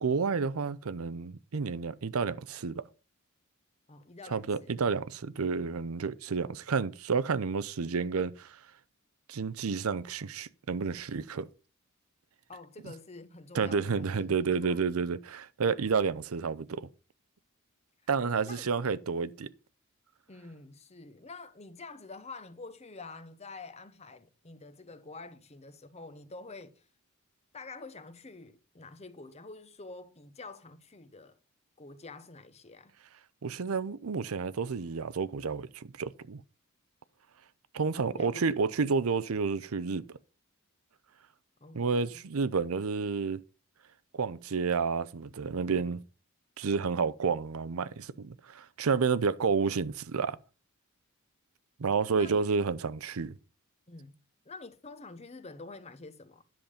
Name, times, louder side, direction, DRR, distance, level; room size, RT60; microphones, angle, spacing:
voice 1, 0.0-2.8 4.3-8.6 9.3-11.5 13.5-16.9 18.1-19.5 33.4-36.4 37.7-40.0 41.7-43.4 44.1-46.0 46.6-50.4 51.8-53.3, right 5 dB, 75° right, 0.6 m, -30 dB
voice 2, 3.9-4.8 12.5-14.8 18.2-18.7 20.3-26.8 27.5-31.4 31.8-32.9 37.9-38.6 41.6-42.2 52.1-52.4 53.9-54.2 54.4-56.4, left 3 dB, 30° left, 0.9 m, -47 dB
10.5 x 7.2 x 5.0 m
head